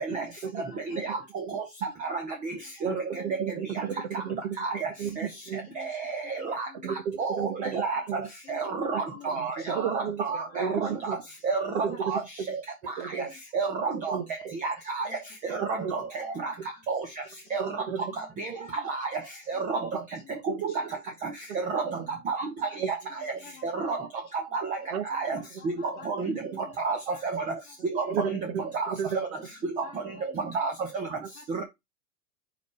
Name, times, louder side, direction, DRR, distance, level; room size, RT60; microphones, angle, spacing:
voice 1, 0.7-1.2 2.0-2.2 2.8-3.2 3.9-4.0 5.7-5.9 6.4-6.9 8.4-8.9 9.1-9.8 11.9-12.0 13.2-13.4 15.0-15.2 15.5-16.0 17.5-18.4 18.8-18.9 19.5-19.6 20.7-20.8 21.4-21.5 22.1-22.5 23.1-24.1 25.4-26.1 26.5-26.8 27.1-27.2 29.6-30.3 31.4-31.6, left 6 dB, 25° left, 2.8 m, -50 dB
voice 2, 2.8-3.9 4.2-4.3 5.0-5.2 5.5-5.7 6.8-8.3 8.9-9.0 9.7-10.2 10.6-11.2 12.0-12.1 13.0-13.2 14.1-14.5 15.5-15.9 17.6-18.1 20.5-20.6 22.8-22.9 24.9-25.0 26.5-26.7 28.1-28.6 28.9-29.1, right 7 dB, 50° right, 1.3 m, -32 dB
voice 3, 5.8-6.6 7.2-8.0 8.5-9.5 9.8-10.9 11.4-11.6 12.1-12.2 12.5-12.6 13.1-13.2 13.5-14.2 14.6-15.1 15.5-16.0 16.4-16.5 16.9-17.0 17.5-17.6 18.4-18.5 18.9-19.1 19.5-19.8 20.6-20.7 21.5-21.8 22.3-22.5 23.6-24.0 24.5-24.8 25.1-25.4 26.1-26.3 26.8-27.0 27.3-27.4 27.9-28.0 28.7-29.3 30.5-30.7, right 4 dB, 20° right, 1.0 m, -30 dB
5.1 x 4.9 x 4.7 m
supercardioid pair, 160°, 41 cm